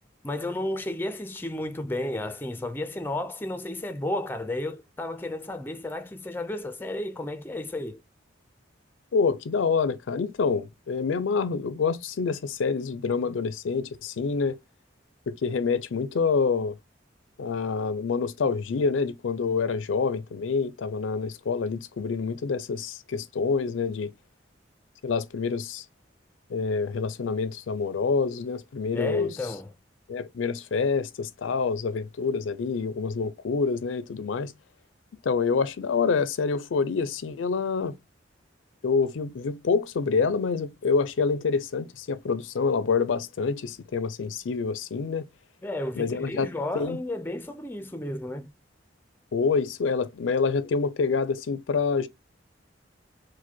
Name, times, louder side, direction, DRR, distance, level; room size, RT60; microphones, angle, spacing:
voice 1, 0.2-8.0 28.9-29.7 45.6-48.5, left 1 dB, 10° left, 0.4 m, -32 dB
voice 2, 9.1-14.6 15.3-16.8 17.4-24.1 25.0-25.8 26.5-29.4 30.1-34.5 35.2-37.9 38.8-45.3 45.9-46.5 46.7-47.0 49.3-52.1, left 5 dB, 90° left, 0.4 m, -27 dB
4.7 x 2.1 x 4.3 m
head